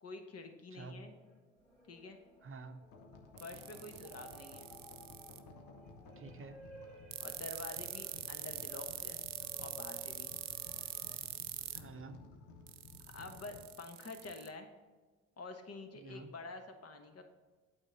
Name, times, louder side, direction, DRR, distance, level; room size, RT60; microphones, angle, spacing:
voice 1, 0.0-1.1 1.9-2.2 3.4-4.7 7.2-9.2 9.6-10.3 13.1-14.7 15.4-17.2, left 3 dB, 45° left, 6 dB, 1.3 m, -48 dB
voice 2, 0.7-1.1 2.4-2.8 6.2-6.6 11.7-12.2 15.9-16.3, right 3 dB, 35° right, 8 dB, 0.8 m, -49 dB
sound 1, 0.8-11.2, right 1 dB, 5° left, 2.1 m, -57 dB
sound 2, 2.8-13.7, left 3 dB, 75° left, 1.0 m, -56 dB
sound 3, 3.4-5.4 7.1-11.8 12.7-14.5, right 15 dB, 70° right, 0.6 m, -43 dB
8.7 x 3.8 x 6.8 m, 1.3 s
hypercardioid pair, 45°, 35 cm